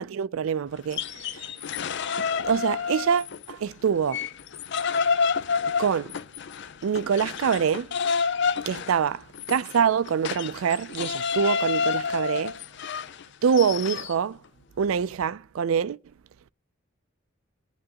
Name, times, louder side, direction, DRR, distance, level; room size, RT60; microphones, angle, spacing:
voice 1, 0.0-1.5 2.4-4.3 5.8-6.1 6.8-7.9 8.7-12.6 13.4-14.4 14.8-16.0, right 7 dB, 90° right, 0.4 m, -25 dB
sound 1, 0.8-3.5 3.9-14.1, left 5 dB, 60° left, 0.5 m, -29 dB
19.5 x 8.9 x 2.9 m
head